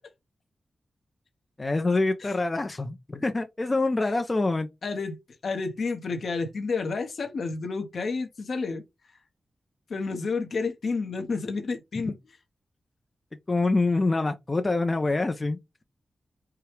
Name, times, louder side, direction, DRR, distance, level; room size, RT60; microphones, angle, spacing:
voice 1, 1.6-4.7 13.5-15.8, left 3 dB, 35° left, 0.6 m, -26 dB
voice 2, 4.8-5.2 5.4-8.8 9.9-12.2, left 4 dB, 70° left, 1.0 m, -30 dB
4.7 x 2.3 x 3.3 m
cardioid pair, 50°, 0 cm